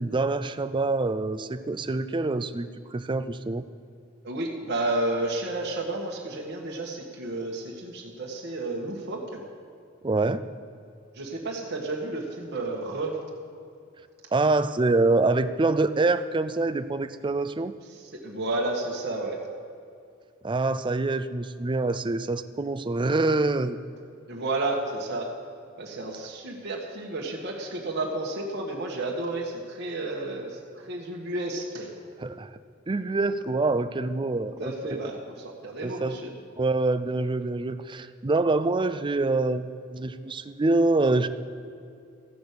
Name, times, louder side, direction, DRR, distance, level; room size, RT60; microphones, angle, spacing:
voice 1, 0.0-3.6 10.0-10.4 14.3-17.7 20.4-23.8 32.2-32.5 32.9-34.7 35.8-36.2 36.6-41.3, right 3 dB, 25° right, 12 dB, 0.5 m, -25 dB
voice 2, 4.2-9.4 11.1-13.2 17.9-19.4 24.3-25.3 25.8-31.9 34.6-36.3, right 2 dB, 55° right, -1 dB, 1.6 m, -31 dB
14.0 x 6.2 x 8.4 m, 2.4 s
head